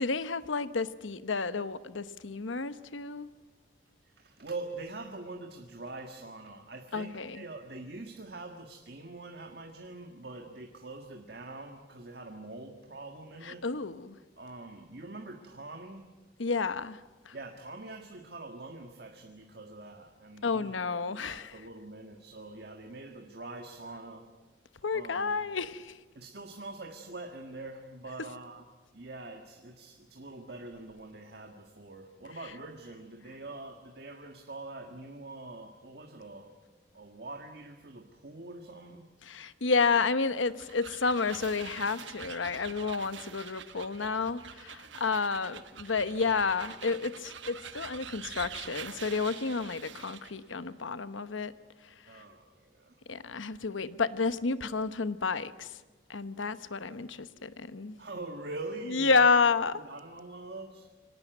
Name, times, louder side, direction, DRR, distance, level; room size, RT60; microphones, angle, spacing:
voice 1, 0.0-3.3 6.9-7.4 13.4-14.2 16.4-17.0 17.3-17.4 20.4-21.5 24.8-26.0 39.2-51.5 52.1-52.2 53.1-55.8 56.1-58.0 58.9-59.8, left 4 dB, 90° left, 1.0 m, -30 dB
voice 2, 4.0-13.6 14.4-16.1 17.3-20.7 21.1-24.2 24.9-25.4 26.2-36.5 36.9-39.1 52.1-53.0 58.0-59.2 59.7-60.9, right 2 dB, 55° right, 1.6 m, -44 dB
sound 1, 40.3-50.4, right 8 dB, 75° right, 1.2 m, -45 dB
25.0 x 18.5 x 9.2 m
head